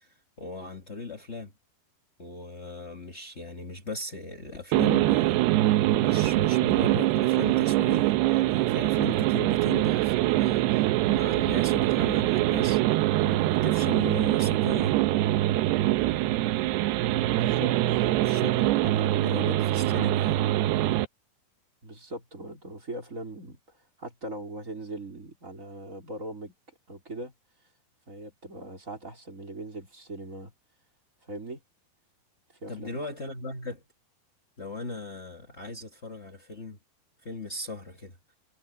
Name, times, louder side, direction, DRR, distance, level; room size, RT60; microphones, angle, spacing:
voice 1, 0.0-1.5 2.2-5.4 5.8-15.0 18.2-20.4 32.7-33.8 34.6-36.8 37.2-38.2, left 3 dB, 85° left, 0.6 m, -38 dB
sound 1, 4.7-21.1, right 16 dB, 80° right, 2.9 m, -24 dB
voice 2, 17.4-18.9 21.8-23.6 24.0-26.5 26.9-27.3 28.1-30.5 31.3-31.6 32.6-33.0, right 1 dB, 20° right, 3.9 m, -40 dB
omnidirectional pair, 4.8 m